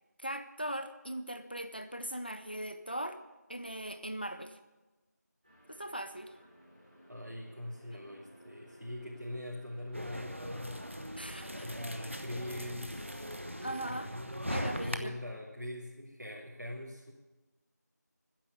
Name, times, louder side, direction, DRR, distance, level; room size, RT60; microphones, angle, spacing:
voice 1, 0.2-3.2 3.5-4.6 5.7-6.3 11.2-11.7 13.6-14.1 14.5-15.1, right 1 dB, 35° left, 11 dB, 0.8 m, -39 dB
sound 1, 5.4-13.1, equal, 20° right, 5.9 m, -58 dB
voice 2, 7.1-10.8 11.5-13.2 13.6-17.1, left 1 dB, 85° right, -6 dB, 3.2 m, -42 dB
sound 2, 9.9-15.0, equal, 45° right, 0.9 m, -40 dB
14.0 x 10.0 x 8.2 m, 1.1 s
figure-of-eight pair, 180°, 10 cm